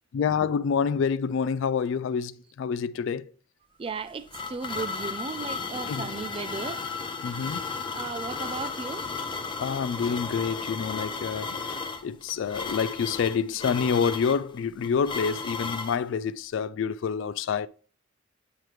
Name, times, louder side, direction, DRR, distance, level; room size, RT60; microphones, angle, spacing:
voice 1, 0.1-3.3 5.9-6.1 7.2-7.6 9.6-11.6 12.0-17.7, left 6 dB, 65° left, 0.3 m, -27 dB
voice 2, 3.8-6.8 7.9-9.1, right 4 dB, 25° right, 0.3 m, -35 dB
sound 1, 3.9-16.0, left 4 dB, 25° left, 0.6 m, -34 dB
9.0 x 3.1 x 4.9 m
head